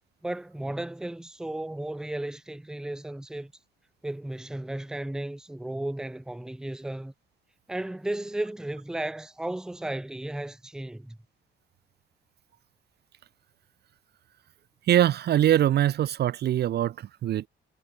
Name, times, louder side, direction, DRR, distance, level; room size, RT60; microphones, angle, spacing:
voice 1, 0.2-3.5 4.0-7.1 7.7-11.2, right 1 dB, 5° right, 0.5 m, -34 dB
voice 2, 14.8-17.5, right 12 dB, 55° right, 0.5 m, -23 dB
cardioid pair, 90°, 20 cm